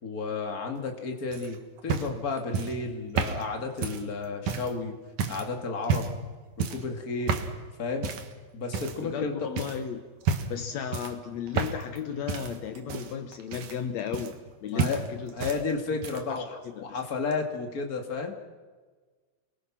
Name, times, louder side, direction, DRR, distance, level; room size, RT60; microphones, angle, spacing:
voice 1, 0.0-5.0 5.3-6.1 6.6-7.4 7.8-8.1 8.5-9.5 14.7-18.3, left 4 dB, 30° left, 4 dB, 2.5 m, -32 dB
sound 1, 1.3-4.8 5.2-5.5 5.8-6.3 6.6-6.9 7.3-7.6 8.0-8.3 8.7-9.2 9.6-9.8 10.2-10.6 10.9-12.0 12.3-14.5 14.8-15.6 15.9-16.4 17.3-17.4, right 6 dB, 75° right, 3.0 m, -31 dB
voice 2, 9.0-10.0 10.5-14.4 14.6-15.3 16.1-16.4 16.7-17.0, left 7 dB, 70° left, 8 dB, 2.3 m, -34 dB
29.5 x 21.5 x 6.2 m, 1.4 s
omnidirectional pair, 3.3 m